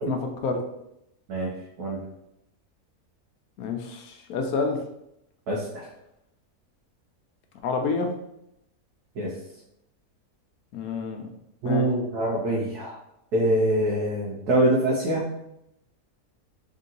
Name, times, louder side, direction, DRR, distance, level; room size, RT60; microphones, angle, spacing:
voice 1, 0.0-0.6 3.6-4.8 7.6-8.1 10.7-11.3 11.6-11.9, left 4 dB, 75° left, 3 dB, 1.1 m, -28 dB
voice 2, 5.5-5.8 9.2-9.3 11.6-13.0 13.3-15.2, right 1 dB, 85° right, -5 dB, 1.3 m, -24 dB
3.7 x 2.7 x 3.8 m, 0.82 s
omnidirectional pair, 1.6 m